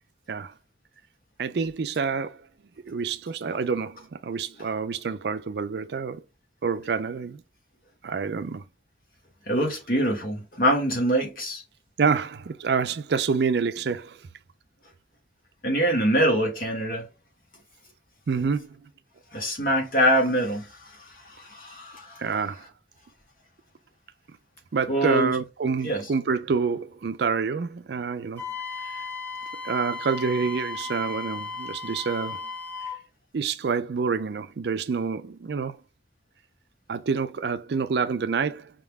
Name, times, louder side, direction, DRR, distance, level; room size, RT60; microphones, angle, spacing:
voice 1, 1.4-2.4 2.9-6.2 6.6-7.4 8.0-8.6 12.0-14.2 18.3-18.8 22.2-22.7 24.7-28.4 28.9-29.0 29.6-32.5 33.3-35.8 36.9-38.7, right 5 dB, 65° right, 0.4 m, -27 dB
voice 2, 9.5-11.6 15.6-17.1 19.3-20.6 21.4-22.2 24.9-25.3 25.8-26.0, equal, 50° left, 1.7 m, -24 dB
Wind instrument woodwind instrument, 28.4-33.0, left 4 dB, 10° left, 1.6 m, -35 dB
5.4 x 3.6 x 2.2 m
head